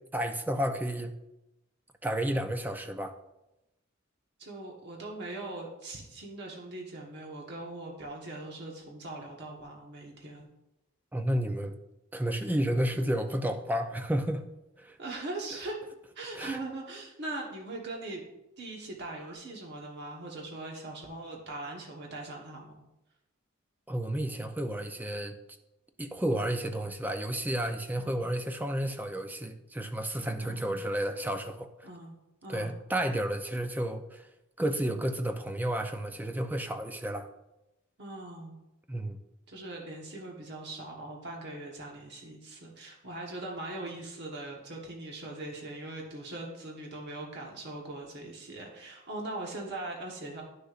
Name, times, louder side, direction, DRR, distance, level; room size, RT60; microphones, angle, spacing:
voice 1, 0.1-1.1 2.0-3.1 11.1-11.7 12.1-14.4 14.8-15.0 16.3-16.6 23.9-25.3 26.0-31.7 32.5-34.3 34.6-37.3 38.9-39.2, right 1 dB, 10° right, 6 dB, 0.5 m, -31 dB
voice 2, 4.4-10.5 15.0-15.8 16.1-18.2 18.6-22.8 27.9-28.2 30.4-30.7 31.8-32.1 32.4-32.7 38.0-38.6 39.5-50.4, right 2 dB, 55° right, -1 dB, 1.2 m, -41 dB
11.0 x 6.5 x 2.5 m, 0.94 s
head